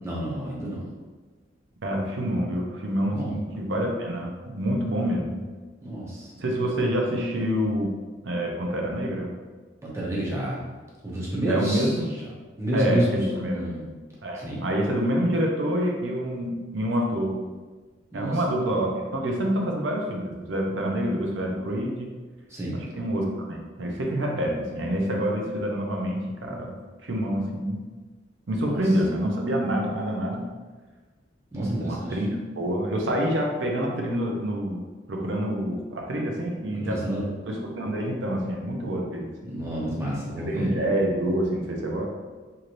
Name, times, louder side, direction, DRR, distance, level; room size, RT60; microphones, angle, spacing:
voice 1, 0.0-0.9 3.1-3.4 5.8-6.3 9.8-10.7 11.0-11.9 12.6-13.1 13.5-13.9 14.3-14.6 18.1-18.4 22.5-22.8 28.6-28.8 31.5-32.2 36.7-37.3 39.5-40.7, right 1 dB, 15° right, -6 dB, 0.7 m, -29 dB
voice 2, 1.8-5.4 6.4-7.9 8.2-9.3 11.5-12.1 12.7-13.6 14.2-17.4 18.1-22.1 22.7-27.8 28.5-30.4 31.5-32.3 32.6-34.8 35.1-37.1 37.5-39.3 40.5-42.0, equal, 70° right, 0 dB, 0.6 m, -27 dB
3.1 x 2.8 x 2.5 m, 1.3 s
head